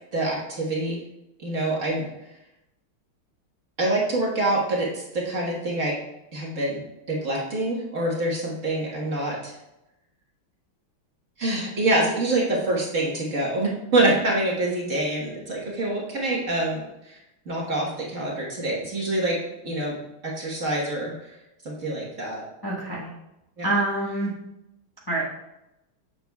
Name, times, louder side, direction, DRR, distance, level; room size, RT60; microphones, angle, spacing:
voice 1, 0.1-1.0 1.4-2.1 3.8-6.0 6.3-6.8 7.1-9.6 11.4-19.9 20.2-21.3 21.6-22.4 23.6-23.7, right 2 dB, 40° right, -4 dB, 1.5 m, -26 dB
voice 2, 22.6-23.1 23.6-24.3 25.1-25.2, right 2 dB, 15° left, -6 dB, 0.8 m, -26 dB
7.7 x 6.9 x 2.3 m, 0.90 s
omnidirectional pair, 2.4 m